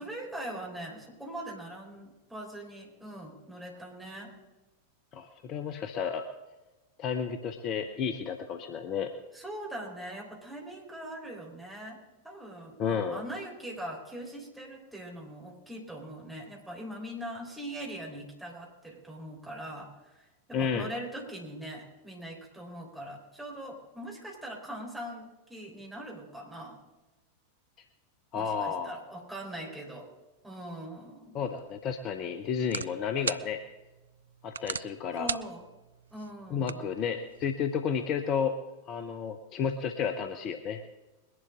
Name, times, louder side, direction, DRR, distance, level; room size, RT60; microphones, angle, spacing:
voice 1, 0.0-4.3 9.3-12.0 12.2-26.8 28.3-30.1 30.4-31.4 35.2-35.7 36.1-36.9, right 1 dB, 5° right, -2 dB, 4.1 m, -41 dB
voice 2, 5.1-6.3 7.0-9.2 12.8-13.2 20.5-20.9 28.3-29.0 31.3-33.6 34.4-35.3 36.5-38.6 38.9-40.8, left 7 dB, 35° left, 7 dB, 0.9 m, -32 dB
sound 1, 31.5-37.5, right 6 dB, 70° right, 0.4 m, -41 dB
21.5 x 11.0 x 3.7 m, 1.1 s
figure-of-eight pair, 90°, 0 cm